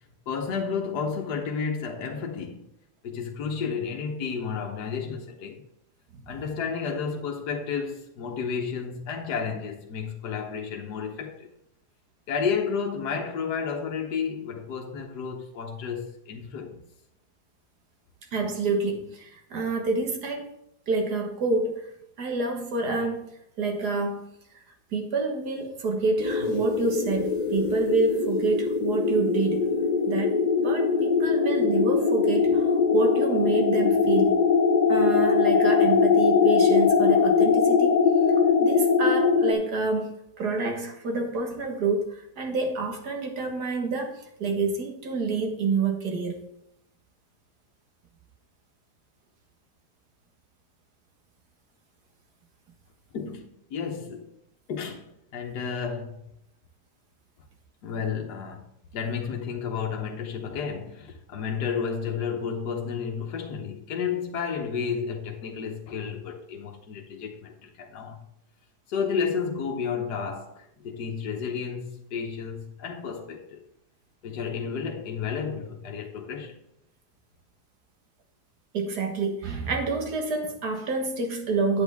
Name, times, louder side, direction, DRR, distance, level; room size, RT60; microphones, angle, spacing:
voice 1, 0.3-2.7 3.0-5.6 6.3-11.5 12.3-16.9 53.1-54.3 54.7-56.2 57.8-58.7 58.9-68.2 68.9-73.6 74.2-76.6, left 6 dB, 75° left, 1.6 m, -31 dB
voice 2, 18.3-20.5 20.9-21.9 22.2-23.3 23.6-24.3 24.9-29.7 30.1-30.4 30.6-34.4 34.9-38.0 38.6-46.4 78.7-81.8, right 3 dB, 70° right, 2.0 m, -28 dB
sound 1, 26.2-39.5, left 5 dB, 55° left, 0.4 m, -22 dB
9.0 x 8.2 x 3.5 m
omnidirectional pair, 1.8 m